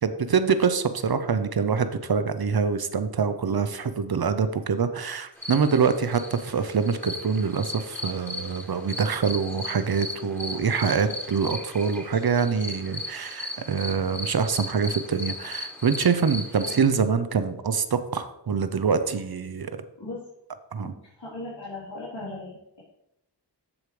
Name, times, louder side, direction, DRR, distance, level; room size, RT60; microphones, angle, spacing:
voice 1, 0.0-19.8 20.7-20.9, right 6 dB, 60° right, 11 dB, 0.7 m, -25 dB
sound 1, 5.4-16.8, left 2 dB, 5° left, 3.4 m, -37 dB
voice 2, 21.2-22.8, left 2 dB, 70° left, -9 dB, 3.3 m, -38 dB
14.5 x 4.8 x 3.2 m, 0.83 s
cardioid pair, 40°, 43 cm